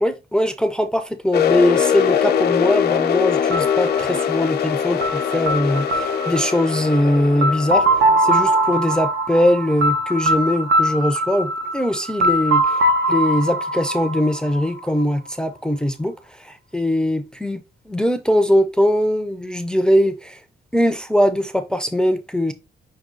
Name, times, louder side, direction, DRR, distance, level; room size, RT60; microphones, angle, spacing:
voice 1, 0.0-20.4 20.7-22.5, left 1 dB, 5° left, 0.4 m, -21 dB
sound 1, 1.3-8.9, left 8 dB, 70° left, 0.8 m, -22 dB
sound 2, 3.5-15.3, right 1 dB, 90° right, 0.9 m, -22 dB
6.0 x 2.3 x 3.8 m
cardioid pair, 135°, 17 cm